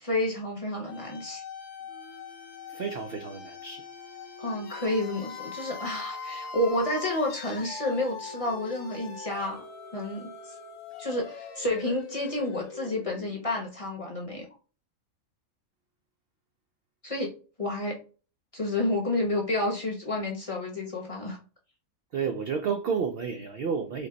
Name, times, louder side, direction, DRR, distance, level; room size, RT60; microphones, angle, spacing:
voice 1, 0.0-1.4 4.4-9.6 9.9-10.3 11.0-14.5 17.0-17.3 17.6-18.0 18.5-21.4, left 1 dB, 25° left, 0.9 m, -30 dB
sound 1, 0.8-13.7, left 5 dB, 65° left, 1.1 m, -42 dB
voice 2, 2.7-3.9 22.1-24.1, right 6 dB, 75° right, 0.5 m, -31 dB
5.1 x 2.1 x 3.9 m
omnidirectional pair, 1.5 m